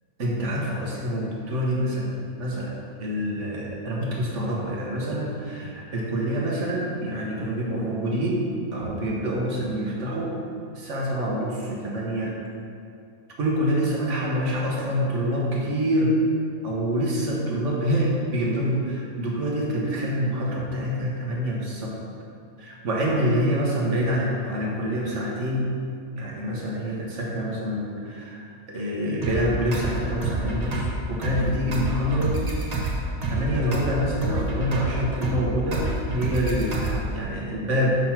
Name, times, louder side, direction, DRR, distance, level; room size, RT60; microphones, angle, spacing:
voice 1, 0.2-2.7 3.0-10.3 10.8-12.3 13.4-16.1 16.6-21.9 22.6-25.7 26.2-32.4 32.7-32.9 33.3-38.0, equal, 55° right, -3 dB, 1.4 m, -26 dB
sound 1, 29.2-37.2, right 2 dB, 30° right, 0.8 m, -28 dB
5.9 x 5.8 x 4.4 m, 2.6 s
omnidirectional pair, 1.5 m